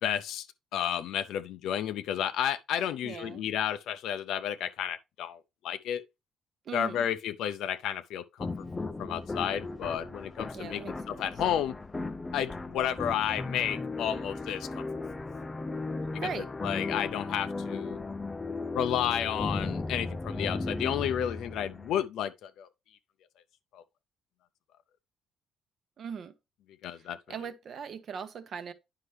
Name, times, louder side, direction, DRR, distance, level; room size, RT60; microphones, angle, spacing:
voice 1, 0.0-0.5 0.7-5.4 5.6-6.0 6.7-8.5 8.8-11.7 12.3-14.8 16.1-18.0 18.7-22.7 23.7-23.8 26.8-27.2, left 10 dB, 65° left, 0.5 m, -32 dB
voice 2, 3.0-3.4 6.6-7.1 10.5-11.3 16.0-16.5 26.0-26.3 26.9-28.7, right 6 dB, 40° right, 0.8 m, -40 dB
sound 1, 8.4-22.1, left 3 dB, 15° left, 0.4 m, -36 dB
9.8 x 5.5 x 3.2 m
cardioid pair, 175°, 0 cm